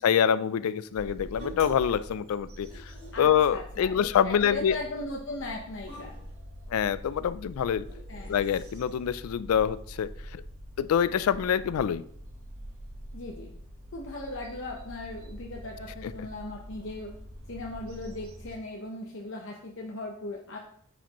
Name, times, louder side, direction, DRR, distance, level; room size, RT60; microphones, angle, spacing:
voice 1, 0.0-2.9 3.2-4.8 6.7-7.8 8.3-10.4 10.8-12.0 16.0-16.1, left 8 dB, 85° left, 15 dB, 0.3 m, -26 dB
sound 1, 0.9-18.5, equal, 90° right, 1.3 m, -45 dB
sound 2, 1.4-2.0 2.2-3.3 3.8-4.2 4.5-4.6 5.8-6.3 7.8-8.8, right 2 dB, 30° right, 3.0 m, -46 dB
voice 2, 3.1-6.1 8.1-8.4 13.1-13.5 13.9-17.1 17.5-20.6, left 2 dB, 60° left, -1 dB, 0.8 m, -38 dB
8.7 x 5.0 x 3.0 m, 0.64 s
head